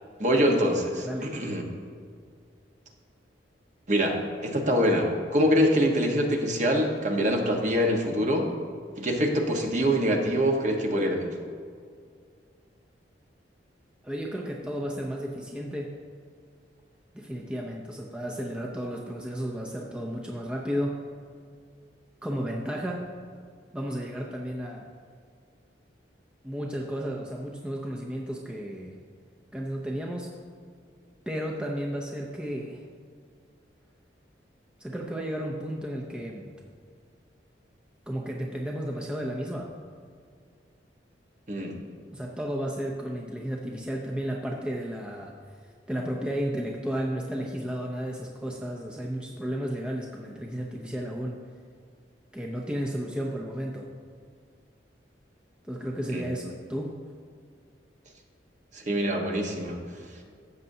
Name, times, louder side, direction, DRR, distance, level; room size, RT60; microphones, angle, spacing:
voice 1, 0.2-1.6 3.9-8.5 9.0-11.3 41.5-41.8 56.1-56.2 58.7-59.8, equal, 40° right, 1 dB, 1.1 m, -24 dB
voice 2, 1.0-1.4 14.0-15.9 17.1-21.0 22.2-23.1 23.7-24.9 26.4-29.0 29.5-30.3 31.3-32.8 34.8-36.5 38.1-39.7 42.1-45.3 45.9-51.4 52.3-53.9 55.7-57.0, equal, 5° right, -1 dB, 0.6 m, -33 dB
13.0 x 8.0 x 2.7 m, 2.1 s
head